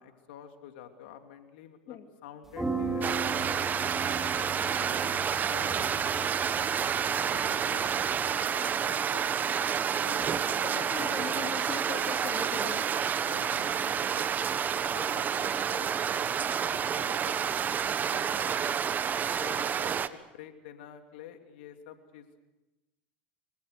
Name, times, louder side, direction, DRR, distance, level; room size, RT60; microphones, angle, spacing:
voice 1, 0.0-3.6 4.1-4.4 5.5-5.9 6.5-6.9 7.3-9.3 9.9-10.8 13.2-14.3 14.9-16.3 16.7-17.4 17.9-18.5 19.3-22.5, left 9 dB, 75° left, 6 dB, 2.8 m, -49 dB
sound 1, 2.5-8.4, right 3 dB, 5° right, 5.6 m, -37 dB
sound 2, 3.0-20.1, right 7 dB, 30° right, 1.3 m, -29 dB
voice 2, 10.6-12.8, left 9 dB, 45° left, 6 dB, 2.6 m, -40 dB
25.5 x 24.5 x 6.6 m, 1.0 s
hypercardioid pair, 95°, 6 cm